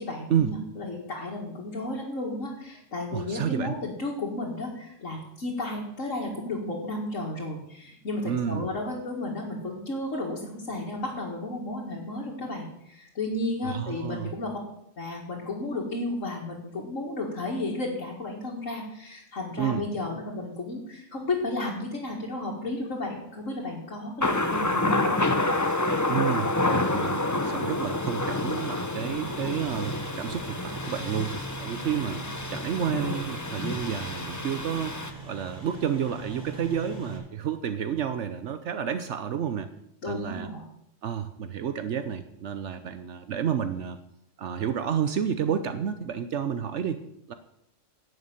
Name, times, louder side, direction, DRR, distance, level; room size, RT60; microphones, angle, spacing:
voice 1, 0.0-14.6 15.0-25.4 40.0-40.6, left 2 dB, 80° left, -3 dB, 2.3 m, -33 dB
voice 2, 3.1-3.7 8.2-8.7 13.6-14.3 19.6-19.8 26.1-35.0 35.2-39.7 40.1-40.5 41.0-44.0 44.4-47.0 47.3-47.4, right 8 dB, 70° right, 10 dB, 1.0 m, -30 dB
Thunder, 24.2-35.1, left 2 dB, 15° left, 0.7 m, -28 dB
sound 1, 29.1-37.2, right 3 dB, 5° right, 4.4 m, -42 dB
11.0 x 6.6 x 9.0 m, 0.77 s
omnidirectional pair, 1.3 m